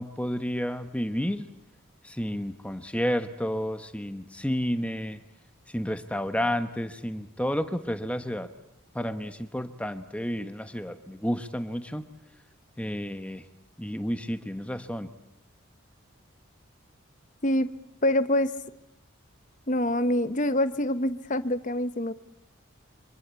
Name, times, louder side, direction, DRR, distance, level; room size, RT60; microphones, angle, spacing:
voice 1, 0.0-1.5 2.0-5.2 5.7-8.5 8.9-12.1 12.8-13.5 13.8-15.1, equal, 5° left, 9 dB, 1.1 m, -31 dB
voice 2, 18.0-18.5 19.7-22.1, left 1 dB, 35° left, 12 dB, 1.0 m, -25 dB
28.0 x 25.5 x 8.3 m, 0.84 s
head